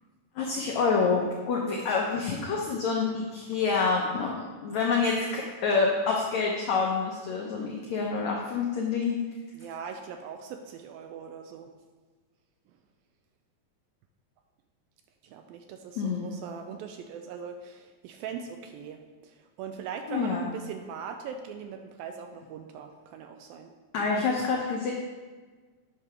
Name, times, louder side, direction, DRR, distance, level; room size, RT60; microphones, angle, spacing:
voice 1, 0.3-4.3 4.6-9.2 16.0-16.3 20.1-20.5 23.9-24.9, left 4 dB, 90° left, -1 dB, 1.5 m, -27 dB
voice 2, 9.5-11.7 15.2-23.7, right 7 dB, 80° right, 5 dB, 2.2 m, -40 dB
8.8 x 4.8 x 5.7 m, 1.4 s
omnidirectional pair, 4.5 m